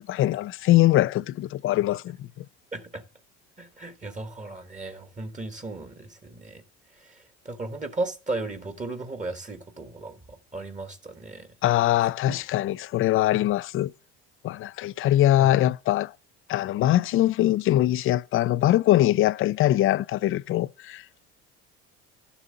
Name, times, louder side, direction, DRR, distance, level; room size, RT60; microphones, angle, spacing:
voice 1, 0.1-2.4 11.6-13.9 14.4-16.1 16.5-21.2, left 14 dB, 40° left, 0.4 m, -22 dB
voice 2, 2.7-3.0 3.6-6.6 7.0-11.5 12.3-12.4 15.4-15.6, right 2 dB, 20° right, 1.3 m, -36 dB
11.5 x 7.0 x 3.9 m
supercardioid pair, 85°, 33 cm